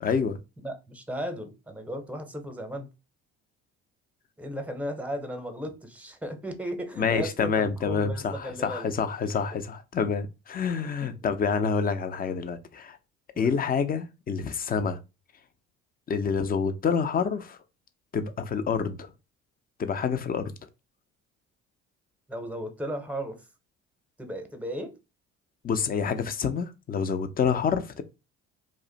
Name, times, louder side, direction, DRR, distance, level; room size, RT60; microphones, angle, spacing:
voice 1, 0.0-0.4 7.0-13.0 13.4-15.0 16.1-17.6 18.1-19.1 19.8-20.5 25.6-28.0, left 6 dB, 30° left, 0.5 m, -27 dB
voice 2, 0.6-2.9 4.4-8.9 9.5-9.6 10.8-11.1 13.3-13.6 22.3-23.4 24.2-25.0 27.5-27.6, equal, 5° right, 0.7 m, -36 dB
2.4 x 2.1 x 3.8 m
hypercardioid pair, 65°, 32 cm